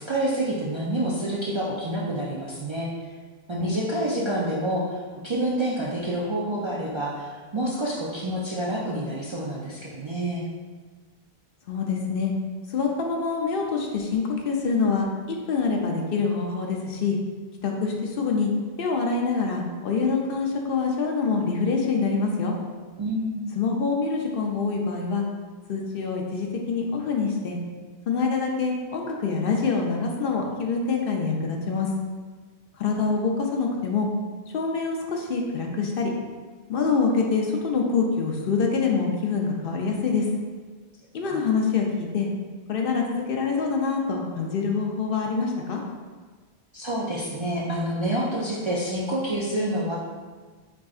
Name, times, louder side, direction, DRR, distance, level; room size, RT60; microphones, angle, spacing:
voice 1, 0.0-2.9 3.5-10.5 23.0-23.4 41.3-41.4 46.7-49.9, right 1 dB, 40° right, -6 dB, 0.4 m, -28 dB
voice 2, 11.7-12.3 12.7-17.2 17.6-18.5 18.8-22.5 23.6-25.2 25.7-27.6 28.1-31.9 32.8-34.1 34.5-36.1 36.7-40.3 41.1-42.3 42.7-45.8, left 4 dB, 65° left, 1 dB, 0.7 m, -25 dB
4.7 x 3.7 x 2.4 m, 1.4 s
omnidirectional pair, 1.1 m